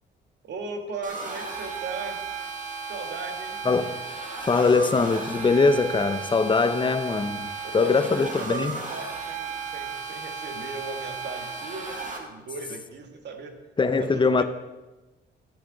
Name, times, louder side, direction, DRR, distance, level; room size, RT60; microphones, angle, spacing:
voice 1, 0.4-2.2 2.8-3.6 7.6-13.5 14.0-14.4, right 3 dB, 60° right, 1.7 m, -38 dB
sound 1, 1.0-12.2, right 5 dB, 40° right, 2.2 m, -35 dB
voice 2, 4.4-7.5 7.7-8.8 13.8-14.4, left 4 dB, 25° left, 0.7 m, -22 dB
11.5 x 8.6 x 3.9 m
cardioid pair, 90°, 20 cm